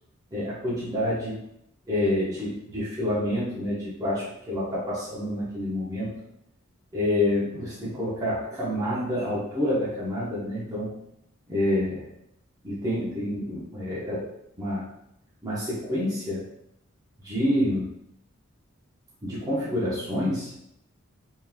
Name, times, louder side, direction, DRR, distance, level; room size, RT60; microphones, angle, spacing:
voice 1, 0.3-1.4 1.9-6.1 6.9-10.9 11.5-12.0 12.6-14.2 14.6-14.8 15.4-16.4 17.2-17.9 19.2-20.5, left 1 dB, 20° right, -9 dB, 0.9 m, -28 dB
3.7 x 3.1 x 2.2 m, 0.78 s
head